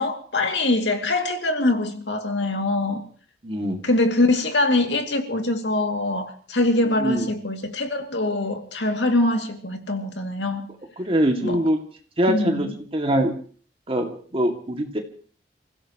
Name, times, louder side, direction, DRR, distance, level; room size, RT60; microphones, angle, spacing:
voice 1, 0.0-3.0 3.8-10.7 11.4-11.6 12.3-12.7, left 2 dB, 80° left, 2.5 m, -23 dB
voice 2, 3.4-3.8 7.0-7.3 11.0-11.8 12.2-13.3 13.9-15.0, right 1 dB, 35° right, 2.2 m, -23 dB
29.5 x 16.0 x 3.0 m
head